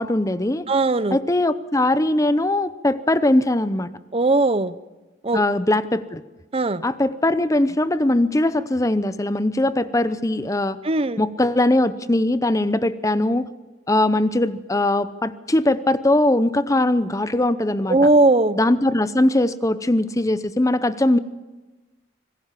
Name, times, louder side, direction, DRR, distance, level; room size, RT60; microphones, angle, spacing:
voice 1, 0.0-0.7 1.1-3.9 5.3-6.2 6.8-10.8 11.2-13.5 13.9-18.0 18.6-21.2, left 1 dB, 15° left, 14 dB, 0.7 m, -20 dB
voice 2, 0.7-1.2 4.1-4.8 5.2-5.4 6.5-6.8 10.8-11.2 17.9-18.6, right 2 dB, 30° right, 15 dB, 0.7 m, -18 dB
26.0 x 20.0 x 7.5 m, 1.2 s
head